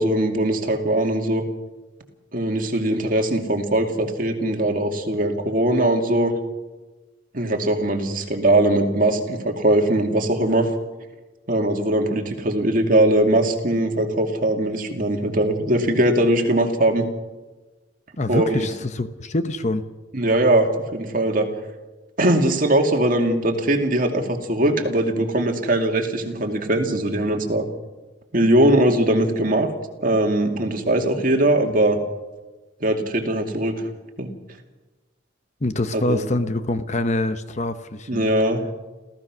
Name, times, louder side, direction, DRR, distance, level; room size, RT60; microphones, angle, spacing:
voice 1, 0.0-1.4 2.3-6.3 7.3-10.7 11.5-17.1 18.3-18.6 20.1-21.5 22.2-27.6 28.3-29.7 30.0-32.0 32.8-33.7 34.2-34.3 35.9-36.2 38.1-38.7, right 1 dB, 45° right, 4 dB, 2.4 m, -20 dB
voice 2, 18.2-19.8 35.6-38.3, left 2 dB, 35° left, 10 dB, 0.9 m, -25 dB
28.5 x 15.0 x 6.2 m, 1.2 s
head